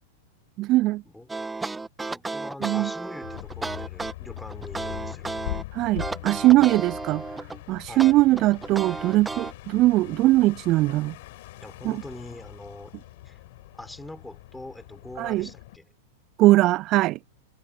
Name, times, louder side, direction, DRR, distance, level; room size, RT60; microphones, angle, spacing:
voice 1, 0.6-1.0 2.6-2.9 5.7-7.2 7.7-11.2 11.8-12.0 15.2-15.5 16.4-17.2, right 18 dB, 40° right, 0.3 m, -20 dB
sound 1, 1.3-5.6 6.0-7.6 8.0-9.5, right 3 dB, 10° right, 1.4 m, -33 dB
voice 2, 2.1-5.3 7.9-8.1 11.6-13.0 13.2-13.4 13.7-15.9, left 2 dB, 5° left, 4.3 m, -43 dB
Single Car Approach and stop, 3.2-15.8, left 18 dB, 55° left, 4.3 m, -41 dB
figure-of-eight pair, 95°, 0 cm